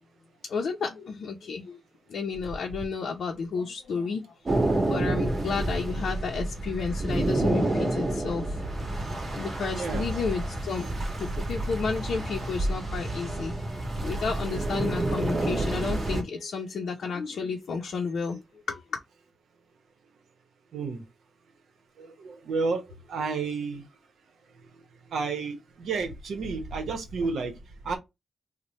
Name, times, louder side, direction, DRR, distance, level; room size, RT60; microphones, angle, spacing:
voice 1, 0.4-1.8 2.1-4.2 4.6-8.6 8.9-9.0 9.3-13.5 14.0-18.4 18.7-19.0, left 5 dB, 70° left, 0.6 m, -32 dB
sound 1, 4.5-16.2, right 2 dB, 35° right, 1.4 m, -29 dB
voice 2, 9.7-10.1 13.6-13.8 20.7-21.0 22.0-23.8 24.6-24.8 25.1-28.0, right 4 dB, 80° right, 0.9 m, -32 dB
3.2 x 2.1 x 4.0 m
wide cardioid pair, 130°, 0 cm